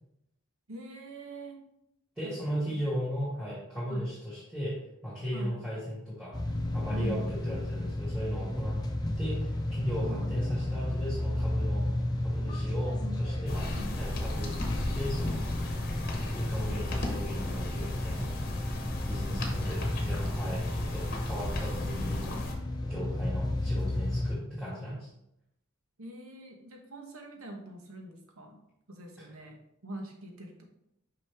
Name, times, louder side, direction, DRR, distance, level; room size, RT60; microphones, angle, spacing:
voice 1, 0.7-1.6 2.2-2.8 3.9-4.1 5.3-5.5 6.9-7.4 10.1-10.3 13.7-13.9 19.3-20.2 26.0-28.6 28.9-29.6 29.8-30.6, right 1 dB, 85° right, 3 dB, 1.1 m, -43 dB
voice 2, 2.2-4.8 5.0-6.4 6.7-8.8 9.2-11.9 12.2-13.7 14.0-14.5 14.9-15.4 16.3-18.3 19.1-22.3 22.9-25.1 29.2-29.3, equal, 5° right, -10 dB, 2.0 m, -36 dB
sound 1, 6.3-24.3, left 1 dB, 20° left, 0.6 m, -33 dB
sound 2, 13.5-22.5, left 1 dB, 45° left, 1.0 m, -36 dB
5.8 x 5.3 x 3.5 m, 0.81 s
head